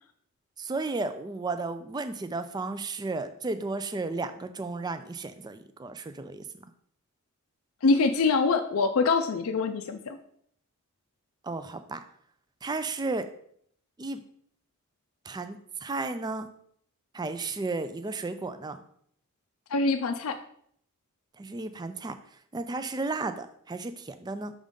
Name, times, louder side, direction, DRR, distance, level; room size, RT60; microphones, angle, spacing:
voice 1, 0.6-6.5 11.4-12.0 12.6-13.3 14.0-14.2 15.3-16.5 17.1-18.8 21.4-22.2 22.5-24.5, right 3 dB, 20° right, 10 dB, 0.3 m, -33 dB
voice 2, 7.8-10.2 19.7-20.4, left 4 dB, 70° left, 6 dB, 0.5 m, -24 dB
6.4 x 3.6 x 5.2 m, 0.66 s
head